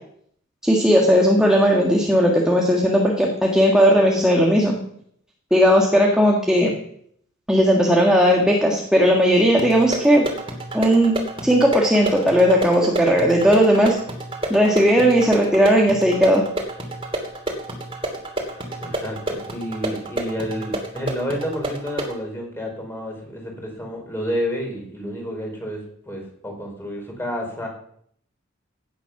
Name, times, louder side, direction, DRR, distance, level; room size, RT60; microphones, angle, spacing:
voice 1, 0.6-4.8 5.5-6.7 7.5-10.3 10.7-11.2 11.4-14.0 14.5-16.4, equal, 5° right, -1 dB, 1.8 m, -17 dB
sound 1, 9.6-22.2, right 1 dB, 25° right, 2.9 m, -30 dB
voice 2, 18.5-27.7, equal, 10° left, 1 dB, 4.7 m, -30 dB
16.5 x 9.5 x 6.0 m, 0.66 s
head